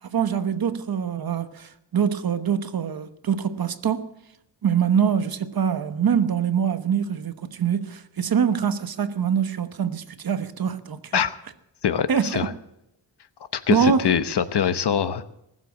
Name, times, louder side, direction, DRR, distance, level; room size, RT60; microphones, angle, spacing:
voice 1, 0.0-4.1 4.6-11.2 12.1-12.5 13.7-14.1, right 7 dB, 55° right, 1.1 m, -24 dB
voice 2, 11.8-12.5 13.5-15.2, left 8 dB, 65° left, 1.1 m, -23 dB
19.5 x 7.4 x 8.3 m
wide cardioid pair, 135°, 44 cm